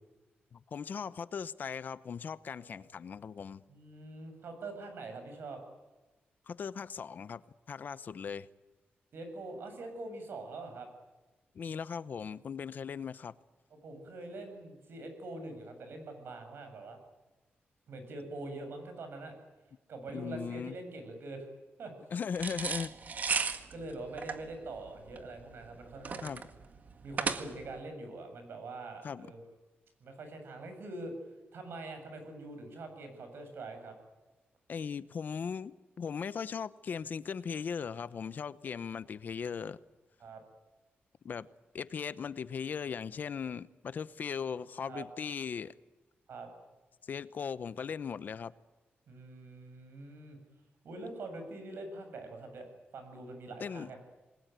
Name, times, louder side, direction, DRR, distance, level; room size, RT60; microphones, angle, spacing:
voice 1, 0.5-3.6 6.5-7.4 7.7-8.5 11.5-13.3 20.1-20.7 22.1-22.9 26.2-26.4 29.0-29.3 34.7-39.8 41.2-41.5 41.7-45.7 47.1-48.5 53.6-53.9, left 6 dB, 50° left, 0.8 m, -38 dB
voice 2, 3.7-5.6 9.1-10.9 13.7-17.0 17.9-19.4 19.9-21.5 21.8-21.9 23.4-26.3 27.0-29.4 30.0-31.1 31.5-34.0 40.2-40.4 44.9-45.1 46.3-46.5 49.1-50.4 50.8-52.7 52.9-54.0, right 2 dB, 70° right, 7.3 m, -44 dB
sound 1, 22.4-27.8, right 5 dB, 45° right, 1.7 m, -35 dB
27.5 x 21.0 x 9.3 m
wide cardioid pair, 175°, 4 cm